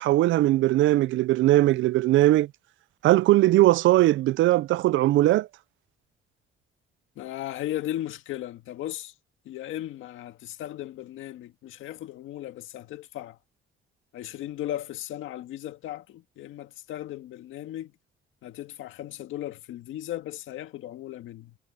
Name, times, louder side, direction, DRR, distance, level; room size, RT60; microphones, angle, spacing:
voice 1, 0.0-2.5 3.0-5.5, right 16 dB, 75° right, 0.4 m, -20 dB
voice 2, 7.2-9.1 9.5-13.4 14.1-17.9 18.4-21.6, left 13 dB, 85° left, 1.8 m, -36 dB
cardioid pair, 90°, 20 cm